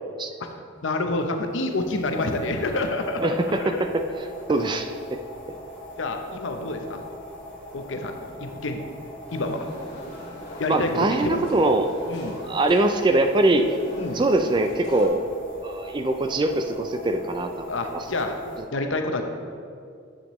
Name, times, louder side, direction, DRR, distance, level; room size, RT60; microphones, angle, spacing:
voice 1, 0.8-3.8 6.0-7.0 7.7-8.8 9.3-9.7 10.6-11.5 12.1-12.4 14.0-14.2 17.6-18.4 18.7-19.2, left 2 dB, 70° left, 5 dB, 0.7 m, -28 dB
sound 1, 1.2-18.6, left 1 dB, 5° left, 1.9 m, -42 dB
voice 2, 3.2-3.7 4.5-5.2 10.7-13.7 14.1-15.2 15.6-18.0, right 2 dB, 25° right, 6 dB, 0.3 m, -23 dB
sound 2, 9.3-15.1, equal, 55° left, 2.0 m, -43 dB
9.8 x 7.2 x 3.1 m, 2.3 s
head